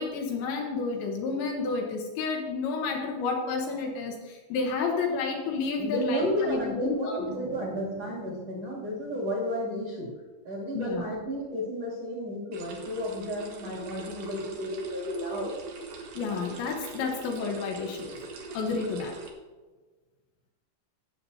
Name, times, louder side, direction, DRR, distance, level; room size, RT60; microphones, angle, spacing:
voice 1, 0.0-7.3 10.7-11.1 16.2-18.1 18.5-19.2, left 4 dB, 75° left, 1 dB, 3.0 m, -30 dB
voice 2, 5.8-10.1 10.4-15.6, equal, 40° right, -4 dB, 2.8 m, -32 dB
sound 1, 7.2-10.0, right 4 dB, 85° right, 1.7 m, -44 dB
sound 2, 12.5-19.3, right 4 dB, 65° right, 2.5 m, -43 dB
18.0 x 7.5 x 2.8 m, 1.3 s
omnidirectional pair, 5.7 m